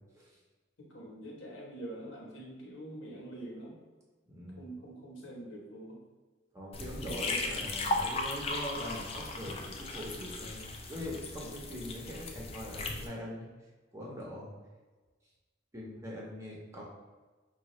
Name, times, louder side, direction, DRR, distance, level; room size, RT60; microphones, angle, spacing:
voice 1, 0.8-3.8 4.6-6.0 7.0-7.6, right 1 dB, 85° left, -2 dB, 1.0 m, -45 dB
voice 2, 4.3-4.6 6.5-13.5 13.9-14.5 15.7-16.8, equal, 15° right, -4 dB, 0.7 m, -42 dB
sound 1, 6.7-13.1, left 2 dB, 30° left, 0.4 m, -37 dB
4.8 x 2.3 x 3.0 m, 1.3 s
head